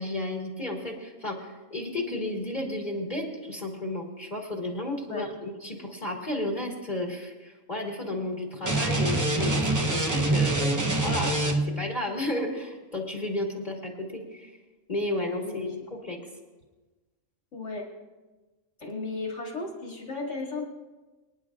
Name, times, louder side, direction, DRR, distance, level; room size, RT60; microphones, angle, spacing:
voice 1, 0.0-10.5 11.0-14.5 14.9-16.2, left 1 dB, 35° left, 0 dB, 1.7 m, -33 dB
sound 1, 8.6-11.9, right 2 dB, 20° right, 0.7 m, -25 dB
voice 2, 15.4-15.7 17.5-17.8 18.8-20.6, left 3 dB, 65° left, -2 dB, 2.6 m, -35 dB
25.5 x 10.0 x 2.4 m, 1.2 s
omnidirectional pair, 1.4 m